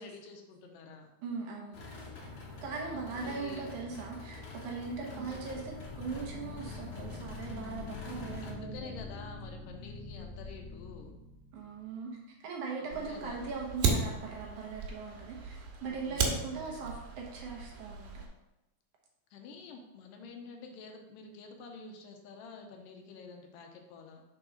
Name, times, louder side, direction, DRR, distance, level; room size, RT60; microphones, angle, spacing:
voice 1, 0.0-1.1 2.8-3.7 5.1-5.7 8.3-11.1 12.8-13.5 15.8-17.1 19.3-24.2, left 4 dB, 80° left, 3 dB, 2.3 m, -49 dB
voice 2, 1.2-1.8 2.6-8.9 11.5-12.1 12.4-18.1, right 4 dB, 70° right, -1 dB, 2.2 m, -40 dB
sound 1, 1.7-8.5, left 3 dB, 55° left, 1.6 m, -46 dB
sound 2, 5.1-11.9, left 3 dB, 35° right, 1.2 m, -45 dB
Fire, 12.9-18.3, right 5 dB, 85° right, 2.9 m, -35 dB
6.1 x 4.5 x 5.1 m, 0.96 s
omnidirectional pair, 4.0 m